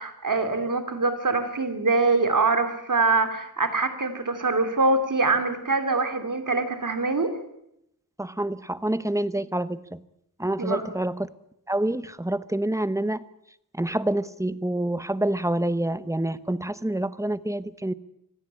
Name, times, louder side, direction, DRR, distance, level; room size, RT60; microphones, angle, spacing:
voice 1, 0.0-7.3 10.6-10.8, right 3 dB, 55° right, 8 dB, 3.1 m, -24 dB
voice 2, 8.2-10.0 10.4-11.3 11.7-13.2 13.7-17.9, right 1 dB, 10° right, 14 dB, 0.9 m, -27 dB
25.0 x 16.5 x 8.5 m, 0.79 s
wide cardioid pair, 95°, 37 cm